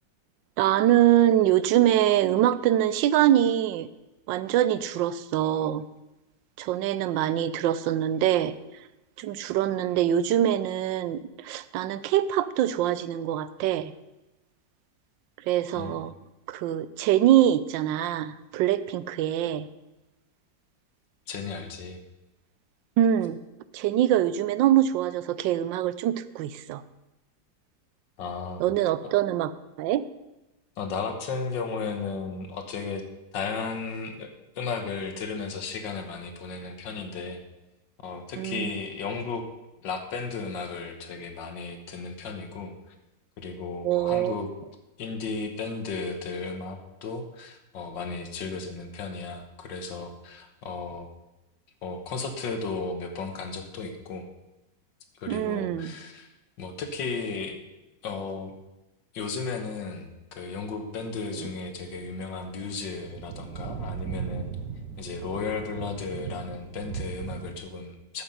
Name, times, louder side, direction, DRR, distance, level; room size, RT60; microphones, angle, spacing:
voice 1, 0.6-3.9 4.3-5.8 6.6-8.5 9.2-13.9 15.5-16.1 16.5-19.7 23.0-23.4 23.7-26.8 28.6-29.5 29.8-30.0 38.4-38.7 43.8-44.3 55.3-55.9 61.4-61.5, right 12 dB, 85° right, 15 dB, 1.3 m, -24 dB
voice 2, 21.3-22.0 28.2-28.6 30.8-33.0 33.3-37.4 38.0-39.4 39.8-42.7 43.4-44.5 45.0-51.1 51.8-54.3 55.2-56.3 56.6-57.6 58.0-58.5 59.1-64.5 65.0-68.2, left 4 dB, 80° left, 6 dB, 1.9 m, -34 dB
sound 1, 61.7-67.6, right 7 dB, 70° right, 1.3 m, -38 dB
13.0 x 6.8 x 5.5 m, 1.0 s
omnidirectional pair, 2.0 m